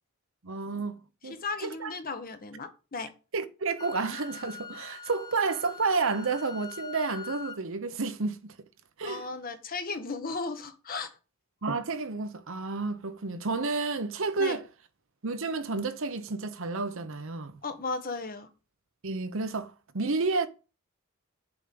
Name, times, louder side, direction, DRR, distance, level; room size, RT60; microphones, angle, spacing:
voice 1, 0.4-1.9 3.3-8.6 9.0-9.3 11.6-14.7 15.2-17.6 19.0-20.5, right 4 dB, 65° right, 1.0 m, -31 dB
voice 2, 1.2-3.1 9.0-11.1 14.4-14.6 17.6-18.5, left 4 dB, 45° left, 1.2 m, -35 dB
Wind instrument woodwind instrument, 3.8-7.6, left 6 dB, 20° left, 0.6 m, -44 dB
7.1 x 5.1 x 7.0 m
head